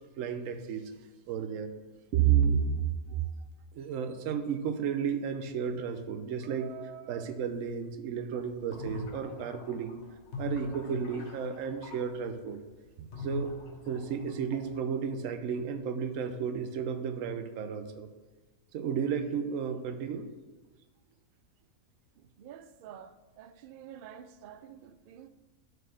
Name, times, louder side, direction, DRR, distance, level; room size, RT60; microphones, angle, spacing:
voice 1, 0.2-0.9 1.3-1.7 2.1-3.2 3.7-10.0 10.4-12.6 13.0-18.1 18.7-20.3, right 7 dB, 70° right, 1.0 m, -32 dB
sound 1, 8.5-12.0 13.1-14.8, left 1 dB, 60° left, 1.2 m, -41 dB
voice 2, 22.2-25.3, right 9 dB, 85° right, 0.4 m, -49 dB
6.6 x 4.4 x 6.3 m
omnidirectional pair, 1.5 m